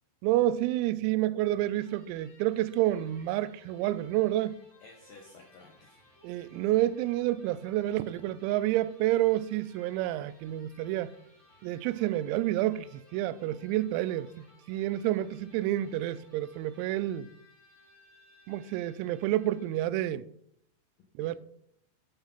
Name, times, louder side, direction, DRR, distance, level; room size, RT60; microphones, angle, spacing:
voice 1, 0.2-4.6 6.2-11.1 11.6-17.3 18.5-20.3 21.2-21.4, right 14 dB, 90° right, 3.3 m, -29 dB
Electric guitar, 1.6-20.0, left 1 dB, 5° left, 4.6 m, -61 dB
voice 2, 4.8-6.0 21.2-21.4, left 3 dB, 75° left, 2.0 m, -53 dB
11.5 x 10.5 x 4.0 m
omnidirectional pair, 6.0 m